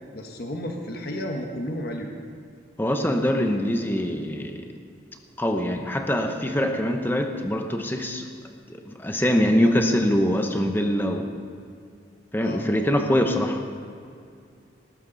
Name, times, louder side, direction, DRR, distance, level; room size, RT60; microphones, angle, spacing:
voice 1, 0.1-2.1 9.6-9.7 12.4-12.6, equal, 50° left, 2 dB, 1.4 m, -32 dB
voice 2, 2.8-4.7 5.4-8.3 8.7-11.3 12.3-13.6, equal, 10° left, 4 dB, 1.0 m, -23 dB
19.0 x 13.5 x 4.0 m, 2.4 s
head